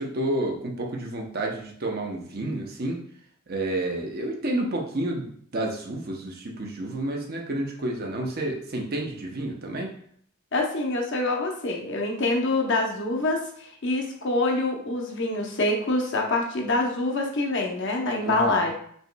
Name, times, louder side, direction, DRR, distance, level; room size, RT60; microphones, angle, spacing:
voice 1, 0.0-3.0 3.5-9.9 18.2-18.7, right 1 dB, 45° right, 1 dB, 0.7 m, -30 dB
voice 2, 10.5-18.7, left 2 dB, 55° left, 1 dB, 0.8 m, -25 dB
5.3 x 2.9 x 2.2 m, 0.62 s
head